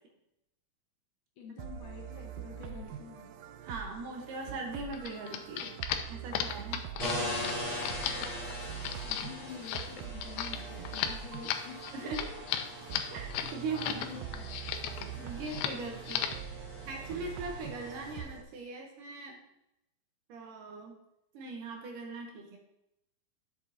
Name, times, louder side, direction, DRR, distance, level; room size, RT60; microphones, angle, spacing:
voice 1, 1.4-3.3 8.9-11.8 13.7-14.4, left 6 dB, 70° left, 0 dB, 2.1 m, -47 dB
sound 1, 1.6-18.4, right 9 dB, 85° right, 1.8 m, -44 dB
voice 2, 3.6-5.7 6.1-6.8 11.9-12.4 13.1-14.1 15.2-16.4 16.9-19.4 20.3-20.9 21.3-22.6, right 3 dB, 70° right, 2 dB, 2.5 m, -40 dB
sound 2, 4.9-14.1 14.3-15.1 15.4-15.8 16.1-16.5, left 10 dB, 90° left, 2.5 m, -35 dB
sound 3, 7.0-18.2, left 1 dB, 40° right, 4.5 m, -41 dB
10.5 x 7.0 x 2.8 m, 0.84 s
omnidirectional pair, 4.3 m